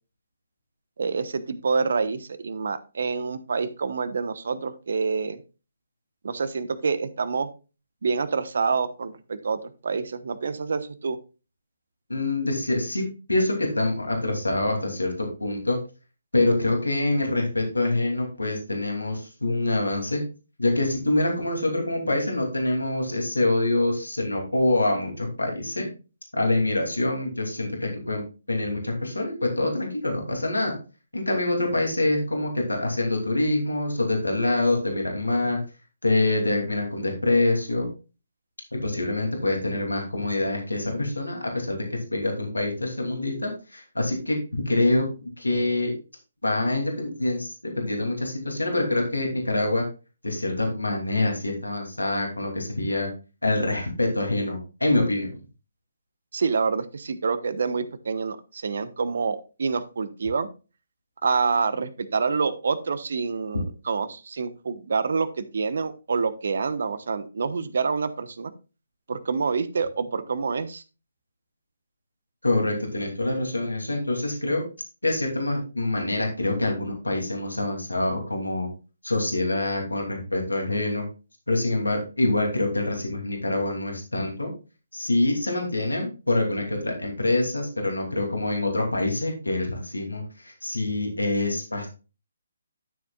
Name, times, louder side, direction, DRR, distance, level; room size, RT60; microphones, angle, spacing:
voice 1, 1.0-5.4 6.2-7.5 8.0-11.2 56.3-60.5 61.2-68.5 69.1-70.8, right 5 dB, 60° right, 13 dB, 1.0 m, -27 dB
voice 2, 12.1-13.0 13.3-15.8 16.3-20.2 20.6-25.9 26.3-28.2 28.5-30.7 31.1-35.6 36.0-37.9 38.8-45.1 45.4-45.9 46.4-49.8 50.2-53.1 53.4-55.3 72.4-74.6 75.0-78.7 79.0-81.0 81.5-84.5 84.9-91.9, left 2 dB, 85° left, 2 dB, 2.7 m, -25 dB
12.0 x 7.0 x 2.4 m, 0.32 s
figure-of-eight pair, 140°, 0 cm